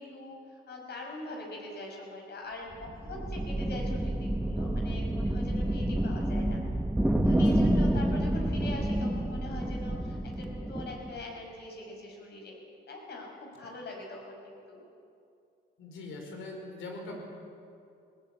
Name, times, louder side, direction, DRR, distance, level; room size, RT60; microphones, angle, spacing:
voice 1, 0.0-6.6 7.2-12.6 12.9-14.8, left 2 dB, 60° left, 0 dB, 5.5 m, -42 dB
sound 1, 2.7-11.2, right 1 dB, 5° right, 0.9 m, -29 dB
voice 2, 7.3-7.6 15.8-17.2, left 2 dB, 80° left, 1 dB, 4.8 m, -42 dB
19.0 x 17.5 x 8.5 m, 2.5 s
cardioid pair, 90°, 20 cm